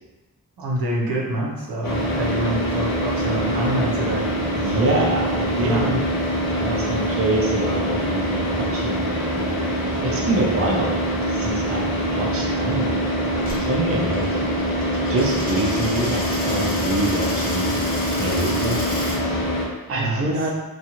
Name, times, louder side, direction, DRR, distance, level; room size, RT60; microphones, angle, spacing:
voice 1, 0.6-5.0 5.5-6.0 20.0-20.3, right 1 dB, 90° right, -4 dB, 0.7 m, -26 dB
Car / Idling, 1.8-19.6, equal, 65° left, 0.7 m, -24 dB
voice 2, 4.5-5.9 6.5-9.6 10.0-11.9 12.2-14.4 15.1-17.7 18.2-18.8 19.2-19.6 19.9-20.5, right 2 dB, 40° right, -2 dB, 0.5 m, -26 dB
Coin (dropping), 13.4-19.2, equal, 25° left, 0.7 m, -33 dB
2.6 x 2.3 x 2.9 m, 1.2 s
wide cardioid pair, 120°, 36 cm